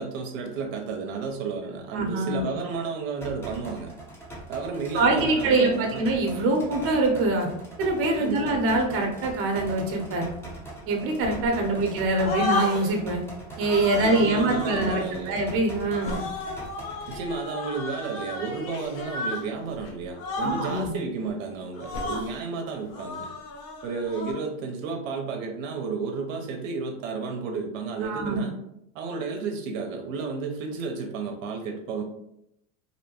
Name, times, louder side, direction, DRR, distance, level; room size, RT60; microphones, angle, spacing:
voice 1, 0.0-3.9 4.5-6.1 8.2-8.5 11.7-11.8 14.0-15.4 17.1-23.3 23.8-28.5 28.9-32.0, right 4 dB, 70° right, 3 dB, 0.6 m, -32 dB
voice 2, 1.9-2.4 4.9-7.5 7.8-10.3 10.9-13.2 13.6-16.2 20.4-21.0 28.0-28.4, right 2 dB, 35° right, 2 dB, 0.6 m, -24 dB
sound 1, 3.2-17.2, right 2 dB, 5° left, 0.6 m, -41 dB
sound 2, 11.2-11.9 12.2-13.0 13.6-15.1 15.9-19.5 19.7-19.9 20.2-20.9 21.7-22.3 22.9-24.3, left 2 dB, 50° left, 0.7 m, -33 dB
2.7 x 2.1 x 2.8 m, 0.79 s
supercardioid pair, 120°, 41 cm